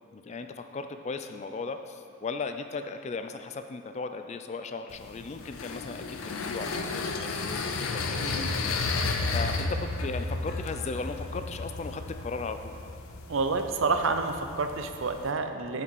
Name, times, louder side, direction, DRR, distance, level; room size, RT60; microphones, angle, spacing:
voice 1, 0.1-8.8 9.3-12.8, left 4 dB, 30° left, 8 dB, 0.3 m, -37 dB
sound 1, 4.9-15.3, left 3 dB, 75° left, 0.7 m, -33 dB
voice 2, 8.2-8.5 13.3-15.8, right 4 dB, 60° right, 7 dB, 0.6 m, -29 dB
8.4 x 7.4 x 4.6 m, 2.5 s
head